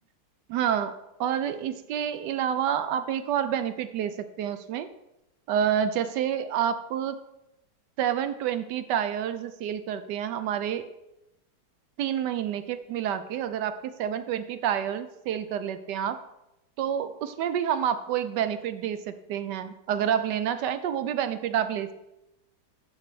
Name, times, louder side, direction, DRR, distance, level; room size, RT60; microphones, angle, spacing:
voice 1, 0.5-4.9 5.5-7.1 8.0-10.9 12.0-16.2 16.8-21.9, right 9 dB, 75° right, 11 dB, 1.2 m, -28 dB
6.1 x 5.4 x 6.8 m, 0.91 s
omnidirectional pair, 2.0 m